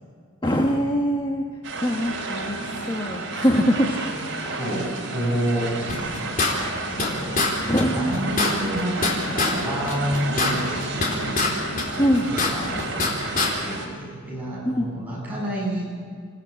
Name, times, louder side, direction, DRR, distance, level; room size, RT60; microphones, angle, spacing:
voice 1, 0.4-1.4 1.8-3.9 7.7-8.3 12.0-12.3 14.6-15.1, equal, 20° left, 0 dB, 1.3 m, -23 dB
sound 1, 1.6-13.9, right 2 dB, 60° right, 3.9 m, -32 dB
voice 2, 4.4-7.6 7.9-11.5 12.3-15.9, right 1 dB, 10° right, -5 dB, 7.8 m, -29 dB
sound 2, 5.9-7.1 7.4-7.5 7.8-7.9 8.1-9.5 9.9-11.5 11.8-13.1 13.4-13.5, left 3 dB, 40° left, 4.1 m, -24 dB
27.0 x 16.5 x 8.9 m, 2.1 s
head